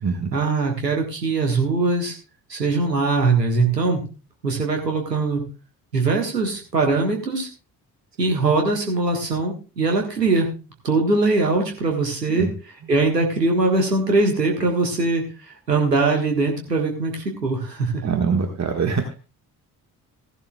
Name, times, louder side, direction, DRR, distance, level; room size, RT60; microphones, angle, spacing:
voice 1, 0.3-2.1 2.5-4.0 4.4-5.4 5.9-7.5 8.2-10.5 10.8-18.2, right 3 dB, 90° right, 2 dB, 1.6 m, -21 dB
voice 2, 18.0-19.0, right 5 dB, 35° right, 4 dB, 1.7 m, -23 dB
16.5 x 11.0 x 2.3 m, 0.32 s
figure-of-eight pair, 40°, 48 cm